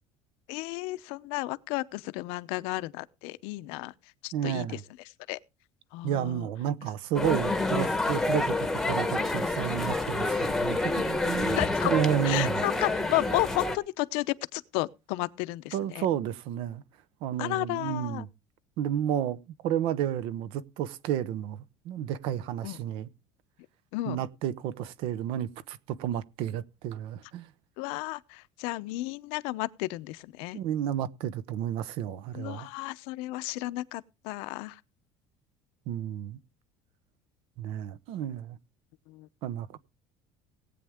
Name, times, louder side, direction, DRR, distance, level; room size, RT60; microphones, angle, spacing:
voice 1, 0.5-3.9 4.2-4.8 5.3-5.4 5.9-6.5 11.5-11.9 12.2-16.1 17.4-18.3 22.6-22.8 23.9-24.2 27.8-30.6 32.3-34.8 39.1-39.3, left 20 dB, 75° left, 0.7 m, -33 dB
voice 2, 4.3-4.8 6.0-12.6 15.7-16.8 17.2-18.3 18.8-23.1 24.1-27.5 30.5-32.7 35.9-36.4 37.6-38.6 39.4-39.8, right 10 dB, 60° right, 0.9 m, -31 dB
sound 1, 7.2-13.8, left 2 dB, 5° left, 1.1 m, -28 dB
18.5 x 8.6 x 3.6 m
cardioid pair, 165°, 10 cm